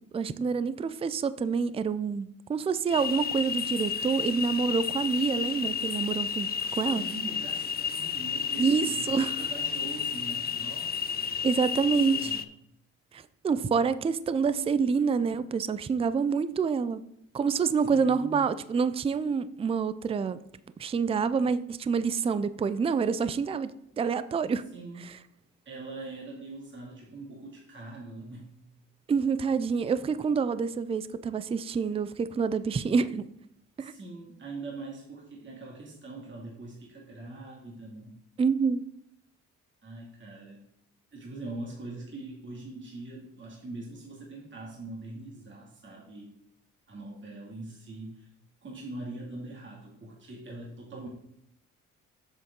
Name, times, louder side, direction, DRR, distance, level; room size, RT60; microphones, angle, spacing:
voice 1, 0.1-7.0 8.6-9.5 11.4-12.3 13.1-17.0 17.3-20.4 20.8-24.6 25.0-25.1 29.1-33.3 33.8-33.9 38.4-38.8, right 5 dB, 20° right, 15 dB, 0.4 m, -27 dB
sound 1, 2.9-12.4, left 7 dB, 30° left, 0.6 m, -32 dB
voice 2, 6.7-11.4 11.7-12.5 17.7-18.5 24.7-25.0 25.7-28.5 33.8-38.2 39.8-40.7 41.1-46.3 46.9-48.3 48.6-51.1, right 2 dB, 40° right, -3 dB, 2.2 m, -42 dB
7.8 x 7.0 x 3.7 m, 0.74 s
cardioid pair, 90°, 30 cm